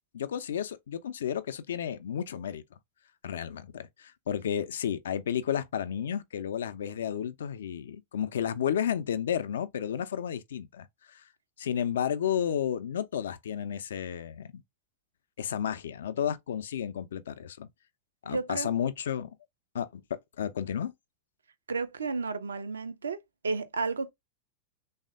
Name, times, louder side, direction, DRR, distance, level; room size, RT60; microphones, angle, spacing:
voice 1, 0.1-2.6 3.2-11.2 11.6-14.5 15.4-17.7 18.2-19.3 19.7-20.0 20.4-20.9, left 9 dB, 65° left, 0.3 m, -32 dB
voice 2, 18.2-18.7 21.7-24.1, right 4 dB, 70° right, 0.4 m, -32 dB
3.2 x 2.0 x 2.4 m
figure-of-eight pair, 90°, 0 cm